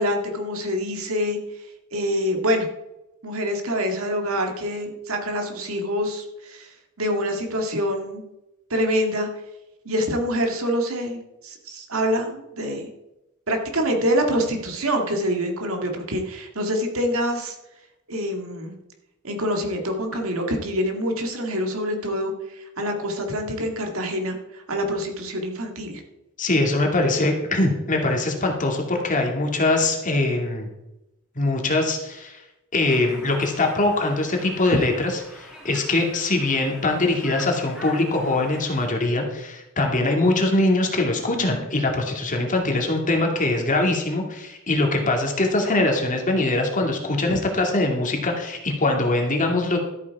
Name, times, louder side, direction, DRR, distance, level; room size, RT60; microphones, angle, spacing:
voice 1, 0.0-1.4 1.9-2.7 3.2-6.7 7.0-8.2 8.7-9.3 9.9-12.9 13.5-17.6 18.1-18.7 19.2-26.0 34.7-34.8 47.3-47.4, equal, 75° right, 3 dB, 2.1 m, -26 dB
voice 2, 26.4-30.7 31.4-32.4 32.7-49.8, left 2 dB, 35° left, 2 dB, 2.3 m, -22 dB
Conversation, 32.9-38.9, left 1 dB, 5° right, 2.7 m, -43 dB
13.0 x 8.3 x 4.7 m, 0.93 s
head